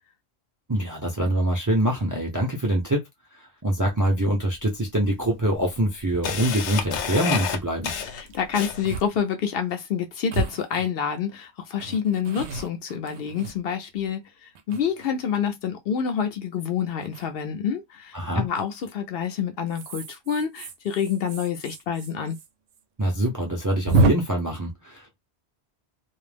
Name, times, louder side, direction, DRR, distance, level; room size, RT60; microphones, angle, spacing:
voice 1, 0.7-3.0 3.4-7.9 18.1-18.5 23.0-25.2, right 1 dB, 25° right, 0.4 m, -24 dB
Camera, 4.1-4.2 5.0-5.1 5.6-9.0, left 7 dB, 90° left, 0.9 m, -29 dB
sound 1, 6.1-6.2 6.7-6.8 7.0-7.4 8.3-8.4 8.9-9.1 9.4-9.5 10.3-11.3 11.8-14.0 14.6-15.3 17.0-17.3 18.6-18.9 19.7-22.5 22.7-22.8 23.1-23.2 23.9-24.1, right 3 dB, 80° right, 0.9 m, -28 dB
voice 2, 8.1-22.4, left 7 dB, 65° left, 0.7 m, -28 dB
2.4 x 2.0 x 3.2 m
omnidirectional pair, 1.1 m